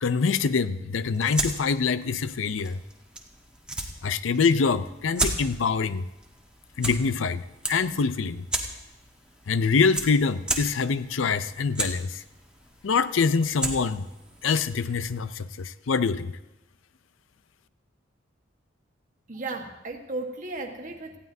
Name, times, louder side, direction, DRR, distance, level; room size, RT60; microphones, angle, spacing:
voice 1, 0.0-2.8 4.0-6.0 6.8-8.4 9.5-12.2 12.8-14.1 14.4-16.3, left 5 dB, 80° left, 14 dB, 0.5 m, -25 dB
sound 1, 1.0-15.4, right 2 dB, 5° right, 1.3 m, -36 dB
voice 2, 19.3-21.2, right 2 dB, 40° right, 3 dB, 1.4 m, -35 dB
18.5 x 14.5 x 2.7 m, 0.99 s
head